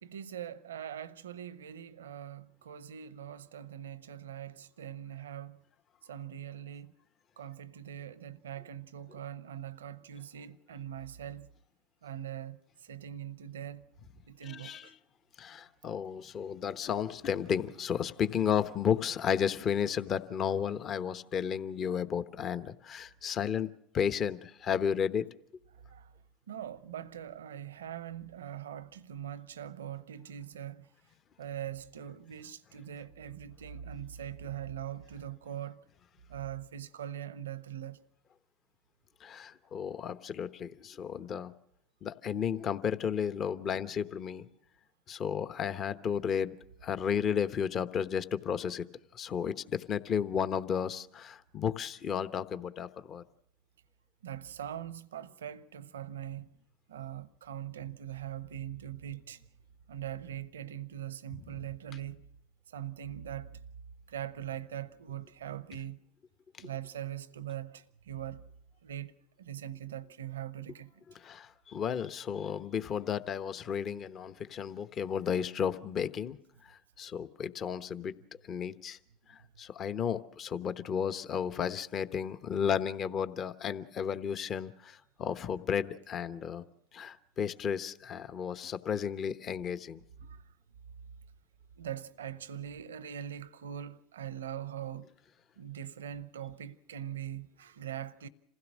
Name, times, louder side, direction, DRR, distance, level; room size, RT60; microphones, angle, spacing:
voice 1, 0.0-5.6 6.0-6.9 7.4-11.5 12.0-13.8 14.3-14.9 25.9-26.1 26.5-30.9 31.4-35.8 36.3-38.0 54.2-56.5 56.9-59.4 59.9-62.3 62.7-63.6 64.1-66.0 66.6-68.4 68.8-71.0 90.2-90.4 91.8-95.1 95.6-98.3, right 10 dB, 90° right, 0.7 m, -42 dB
voice 2, 14.4-14.9 15.4-25.3 39.2-41.5 42.0-44.5 45.1-46.5 46.8-48.8 49.1-53.2 71.1-76.4 76.7-78.1 78.5-79.0 79.3-86.6 86.9-90.0, left 7 dB, 45° left, 1.0 m, -33 dB
27.0 x 16.0 x 6.3 m
hypercardioid pair, 85°, 0 cm